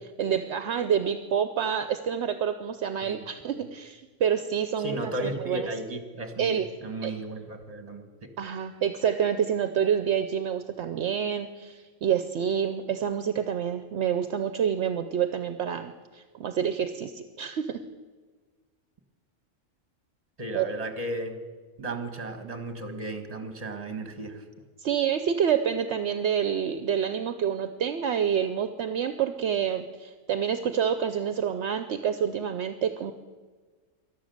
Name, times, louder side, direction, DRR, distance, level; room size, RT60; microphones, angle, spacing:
voice 1, 0.2-5.6 6.4-6.6 7.0-7.1 8.4-17.8 20.5-20.7 24.8-33.1, right 8 dB, 65° right, 10 dB, 0.9 m, -28 dB
voice 2, 4.8-6.6 6.8-8.3 20.4-21.4 21.8-24.4, right 1 dB, 30° right, 7 dB, 1.5 m, -34 dB
12.5 x 11.5 x 7.8 m, 1.4 s
omnidirectional pair, 1.3 m